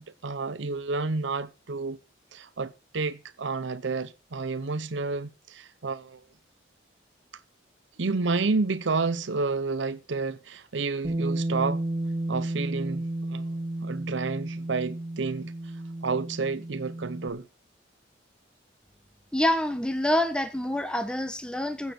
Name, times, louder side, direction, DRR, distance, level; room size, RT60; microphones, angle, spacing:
voice 1, 0.0-2.0 2.3-6.2 8.0-11.8 12.3-13.6 13.8-15.5 16.0-17.5, right 4 dB, 75° right, 0.7 m, -30 dB
Bass guitar, 11.0-17.3, right 1 dB, 30° right, 1.5 m, -32 dB
voice 2, 19.3-21.9, left 1 dB, 5° left, 1.1 m, -26 dB
15.5 x 7.2 x 6.0 m
head